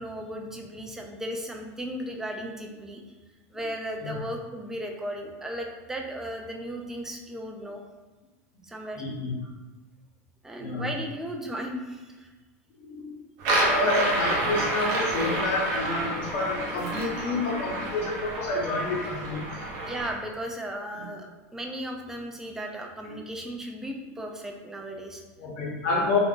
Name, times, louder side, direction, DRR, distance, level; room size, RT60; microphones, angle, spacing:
voice 1, 0.0-3.0 3.5-7.8 8.6-9.0 10.4-12.3 19.9-21.3 21.5-25.2, equal, 5° right, 2 dB, 0.4 m, -36 dB
voice 2, 9.0-9.3 10.6-10.9 12.8-13.1 13.5-19.6 20.9-21.1 23.0-23.2 25.4-26.2, left 2 dB, 55° left, -3 dB, 1.0 m, -29 dB
sound 1, 13.4-20.1, right 1 dB, 55° right, 0.9 m, -29 dB
3.4 x 2.5 x 2.4 m, 1.3 s
supercardioid pair, 125°, 8 cm